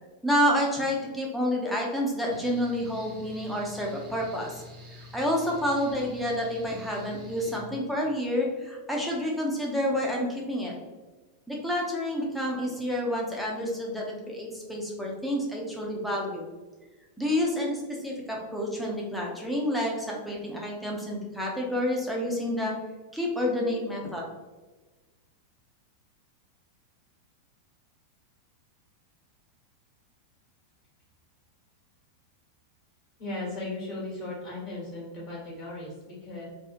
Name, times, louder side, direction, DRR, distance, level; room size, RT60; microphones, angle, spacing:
voice 1, 0.2-4.6 5.0-10.7 11.5-16.5 17.2-22.7 23.1-24.3, equal, ahead, -3 dB, 0.6 m, -29 dB
Mechanical fan, 2.3-7.6, left 1 dB, 40° right, 0.8 m, -47 dB
voice 2, 33.2-36.4, left 2 dB, 35° left, -5 dB, 1.2 m, -37 dB
2.7 x 2.0 x 2.5 m, 1.2 s
figure-of-eight pair, 90°, 0 cm